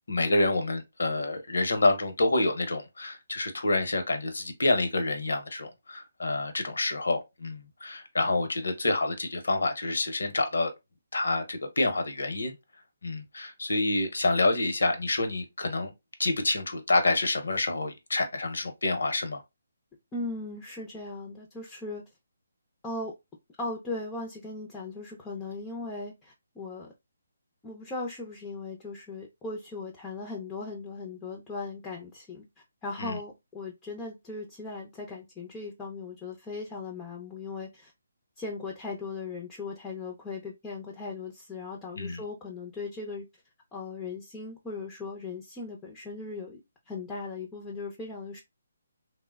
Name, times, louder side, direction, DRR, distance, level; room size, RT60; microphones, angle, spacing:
voice 1, 0.1-10.7 11.1-12.5 13.0-15.9 16.2-19.4 33.0-33.2 41.9-42.2, left 2 dB, 75° left, 0.7 m, -27 dB
voice 2, 20.1-22.0 22.8-23.1 23.6-26.9 27.6-32.4 32.8-37.9 38.4-43.2 43.7-46.6 46.9-48.4, left 3 dB, 15° left, 0.5 m, -38 dB
3.1 x 2.1 x 2.2 m
figure-of-eight pair, 150°, 0 cm